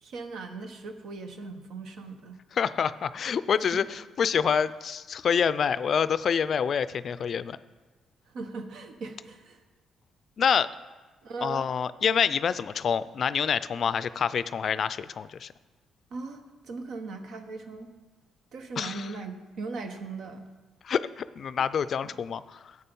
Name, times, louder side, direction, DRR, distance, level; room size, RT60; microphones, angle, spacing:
voice 1, 0.0-2.4 3.7-3.8 8.3-9.6 11.2-11.6 16.1-17.9 18.5-20.5 22.0-22.2, right 3 dB, 70° right, 6 dB, 1.2 m, -39 dB
voice 2, 2.5-7.6 10.4-10.7 11.4-15.5 18.8-19.1 20.8-22.8, left 7 dB, 55° left, 15 dB, 0.4 m, -27 dB
11.0 x 8.3 x 5.4 m, 1.3 s
cardioid pair, 90°, 0 cm